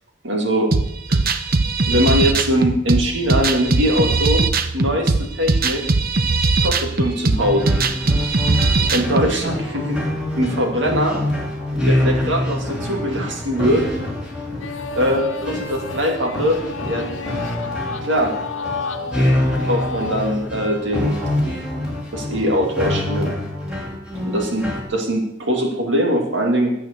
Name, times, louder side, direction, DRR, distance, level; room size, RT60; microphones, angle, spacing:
voice 1, 0.2-0.7 1.9-4.5 4.7-5.8 6.6-7.9 8.9-10.0 10.4-11.2 11.8-13.8 15.0-17.2 18.0-18.3 19.6-21.2 22.1-23.3 24.2-26.7, equal, 65° right, 1 dB, 2.8 m, -21 dB
sound 1, 0.7-9.3, right 3 dB, 45° right, 0.9 m, -19 dB
sound 2, 7.4-24.8, left 1 dB, 5° right, 3.4 m, -25 dB
sound 3, 14.6-20.5, left 3 dB, 75° left, 1.1 m, -31 dB
12.0 x 8.5 x 7.0 m, 0.79 s
head